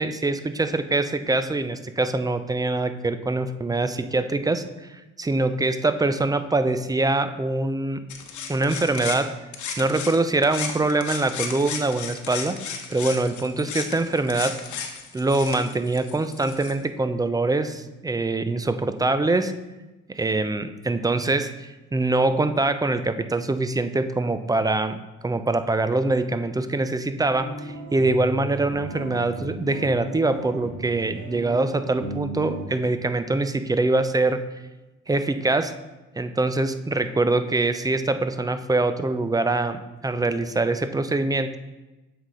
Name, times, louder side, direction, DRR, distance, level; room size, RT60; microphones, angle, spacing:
voice 1, 0.0-4.6 4.9-8.0 8.5-9.4 9.8-12.6 12.9-14.6 15.1-19.5 20.1-25.0 25.2-34.4 35.1-35.8 36.2-41.6, right 2 dB, 15° right, 10 dB, 0.4 m, -24 dB
sound 1, 8.1-10.2 10.4-16.7, left 6 dB, 75° left, 0.9 m, -34 dB
sound 2, 27.3-32.7, right 3 dB, 50° right, 2.2 m, -35 dB
7.4 x 4.8 x 3.8 m, 1.1 s
cardioid pair, 90°, 30 cm